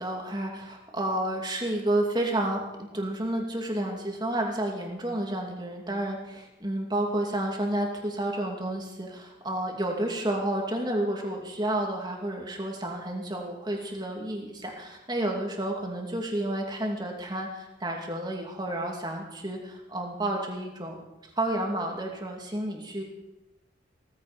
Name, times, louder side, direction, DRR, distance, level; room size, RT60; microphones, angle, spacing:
voice 1, 0.0-2.6 2.9-21.0 21.4-23.0, right 1 dB, 20° right, 1 dB, 2.6 m, -30 dB
17.5 x 14.5 x 5.2 m, 0.97 s
head